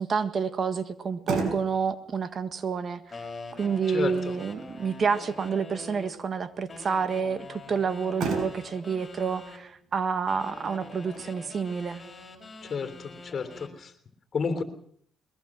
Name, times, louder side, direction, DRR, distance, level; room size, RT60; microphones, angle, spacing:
voice 1, 0.0-3.2 3.5-12.0, right 6 dB, 45° right, 11 dB, 1.6 m, -29 dB
Motor vehicle (road), 0.9-13.8, right 4 dB, 70° right, 5.3 m, -40 dB
sound 1, 3.1-6.2 6.7-9.6 10.3-13.8, left 3 dB, 25° left, 6.0 m, -45 dB
voice 2, 3.9-4.4 12.7-13.9 14.3-14.6, left 5 dB, 45° left, 9 dB, 3.4 m, -31 dB
21.5 x 21.0 x 6.3 m, 0.63 s
cardioid pair, 90°, 0 cm